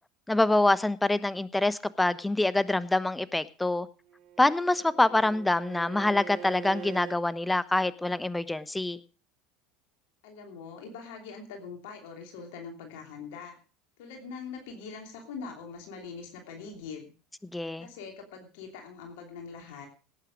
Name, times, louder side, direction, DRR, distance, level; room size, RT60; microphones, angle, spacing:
voice 1, 0.3-3.9 4.4-9.0 17.5-17.9, left 2 dB, 10° left, 17 dB, 1.0 m, -25 dB
Bowed string instrument, 4.1-7.2, right 9 dB, 50° right, 2.1 m, -43 dB
voice 2, 10.2-13.6 14.0-17.1 17.8-19.9, left 5 dB, 65° left, 3 dB, 3.0 m, -43 dB
18.0 x 9.2 x 5.2 m, 0.35 s
figure-of-eight pair, 75°, 0 cm